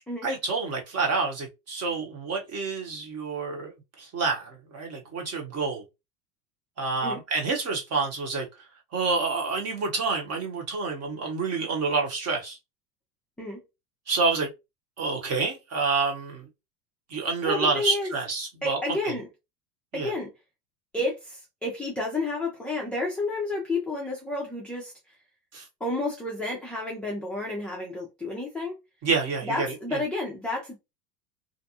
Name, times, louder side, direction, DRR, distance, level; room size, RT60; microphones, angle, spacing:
voice 1, 0.2-5.8 6.8-8.5 8.9-12.6 14.1-14.5 15.0-16.4 17.1-19.2 19.9-20.1 25.5-25.7 29.0-30.0, right 4 dB, 30° right, 1.0 m, -28 dB
voice 2, 17.4-18.1 18.6-19.3 19.9-20.3 20.9-24.9 25.8-28.7 29.4-30.8, left 2 dB, ahead, 0.4 m, -31 dB
2.6 x 2.1 x 2.8 m
hypercardioid pair, 105°, 50 cm